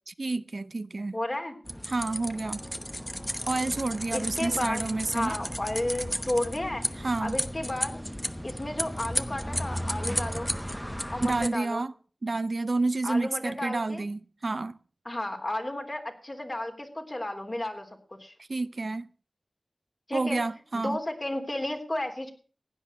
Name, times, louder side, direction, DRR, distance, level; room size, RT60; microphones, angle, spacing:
voice 1, 0.1-1.2 1.9-2.6 3.5-5.4 7.0-7.4 11.2-11.9 12.2-14.8 18.5-19.1 20.1-21.0, right 3 dB, 65° right, 0.6 m, -29 dB
voice 2, 1.1-1.5 4.1-4.9 5.1-8.0 8.4-10.5 11.1-11.8 13.0-14.0 15.0-18.3 20.1-20.4 20.7-22.3, left 1 dB, 40° left, 3.4 m, -33 dB
sound 1, 1.7-11.5, equal, 5° left, 1.0 m, -34 dB
16.0 x 9.8 x 6.3 m
cardioid pair, 40°, 0 cm